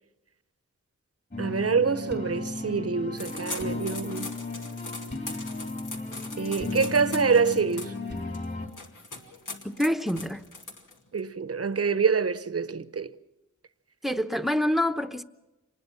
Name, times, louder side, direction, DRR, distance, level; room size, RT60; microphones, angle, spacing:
sound 1, 1.3-8.7, left 3 dB, 35° left, 3.9 m, -35 dB
voice 1, 1.4-4.3 6.4-7.9 11.1-13.1, right 5 dB, 50° right, 0.9 m, -26 dB
sound 2, 3.2-11.2, left 3 dB, 85° left, 2.4 m, -41 dB
voice 2, 9.6-10.4 14.0-15.2, left 1 dB, ahead, 0.9 m, -26 dB
27.0 x 20.0 x 5.9 m
wide cardioid pair, 80°, 31 cm